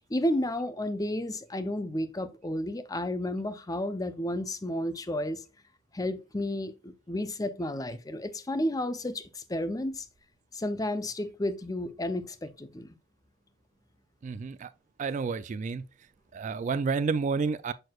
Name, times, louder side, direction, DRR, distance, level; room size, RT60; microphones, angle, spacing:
voice 1, 0.1-5.4 5.9-10.1 10.5-12.9, left 1 dB, 20° left, 0.6 m, -32 dB
voice 2, 14.2-14.7 15.0-15.8 16.3-17.7, right 5 dB, 40° right, 0.3 m, -30 dB
6.6 x 6.1 x 2.3 m
head